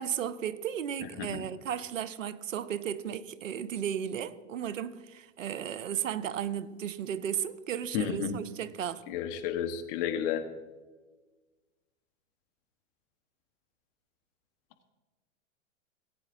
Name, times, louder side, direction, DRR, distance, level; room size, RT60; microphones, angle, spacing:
voice 1, 0.0-9.0, right 9 dB, 80° right, 0.7 m, -34 dB
voice 2, 7.9-8.4 9.1-10.5, left 8 dB, 45° left, 1.3 m, -32 dB
19.0 x 9.1 x 2.6 m
hypercardioid pair, 105°, 38 cm